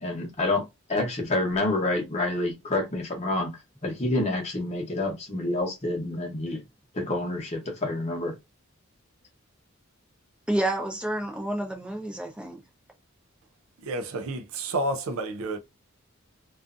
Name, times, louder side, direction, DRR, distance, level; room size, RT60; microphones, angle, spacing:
voice 1, 0.0-0.6 0.9-3.5 3.8-6.6 6.9-8.3, left 2 dB, 30° left, 0.8 m, -28 dB
voice 2, 10.5-12.6, right 1 dB, 5° right, 0.5 m, -29 dB
voice 3, 13.8-15.6, right 2 dB, 80° right, 0.4 m, -30 dB
2.5 x 2.3 x 2.4 m
head